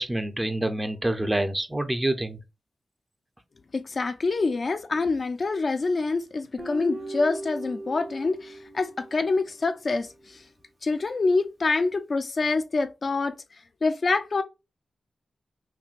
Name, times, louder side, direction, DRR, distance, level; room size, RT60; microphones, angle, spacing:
voice 1, 0.0-2.4, right 1 dB, 15° right, 0.6 m, -27 dB
voice 2, 3.7-10.4 10.8-13.3 13.8-14.4, left 3 dB, 50° left, 0.4 m, -26 dB
Guitar, 6.6-9.9, right 1 dB, 55° right, 1.8 m, -38 dB
5.9 x 2.2 x 2.5 m
cardioid pair, 70°, 0 cm